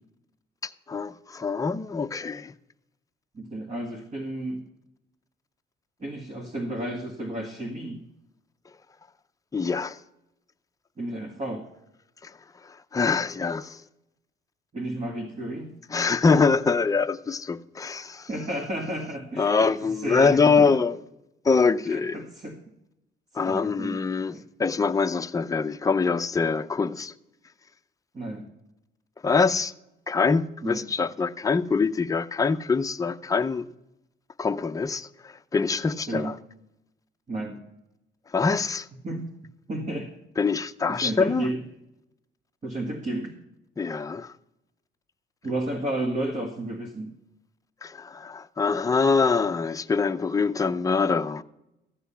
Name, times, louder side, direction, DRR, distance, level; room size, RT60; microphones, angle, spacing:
voice 1, 0.9-2.5 9.5-10.0 12.9-13.8 15.9-18.3 19.4-20.9 21.4-22.2 23.4-24.3 24.6-27.1 29.2-29.7 30.1-33.6 34.4-35.1 35.5-36.3 38.3-38.9 40.4-41.5 43.8-44.3 47.8-51.4, left 4 dB, 15° left, 0.5 m, -24 dB
voice 2, 3.3-4.6 6.0-8.0 11.0-11.7 14.7-15.7 18.3-20.9 21.9-22.6 23.5-24.0 24.3-24.4 28.1-28.5 30.6-30.9 36.1-36.3 37.3-37.6 39.0-39.2 39.7-40.1 40.9-41.6 42.6-43.4 45.4-47.1, right 1 dB, 35° right, 1.7 m, -32 dB
14.5 x 8.2 x 5.6 m
cardioid pair, 90°, 20 cm